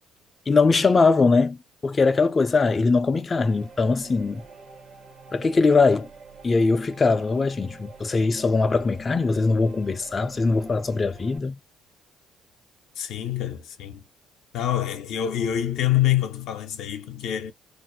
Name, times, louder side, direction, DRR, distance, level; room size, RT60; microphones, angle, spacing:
voice 1, 0.5-1.6 1.8-4.4 5.3-6.1 6.4-11.5, left 4 dB, 30° left, 0.3 m, -21 dB
sound 1, 3.4-11.4, right 4 dB, 50° right, 0.8 m, -46 dB
voice 2, 13.0-14.0 14.5-17.5, left 12 dB, 75° left, 0.6 m, -26 dB
2.4 x 2.1 x 2.5 m
supercardioid pair, 80°, 0 cm